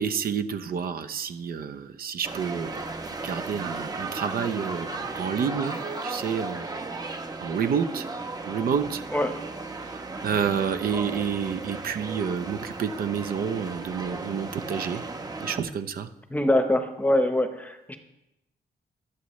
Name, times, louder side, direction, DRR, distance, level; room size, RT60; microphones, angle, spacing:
voice 1, 0.0-2.8 3.2-4.9 5.1-6.6 7.4-8.1 8.5-9.0 10.2-15.0 15.4-16.1, right 7 dB, 60° right, 10 dB, 0.8 m, -29 dB
sound 1, 2.2-15.6, right 3 dB, 20° right, 0.9 m, -35 dB
voice 2, 16.3-18.0, left 1 dB, 10° left, 7 dB, 0.9 m, -23 dB
24.0 x 8.4 x 3.2 m, 0.93 s
wide cardioid pair, 160°, 17 cm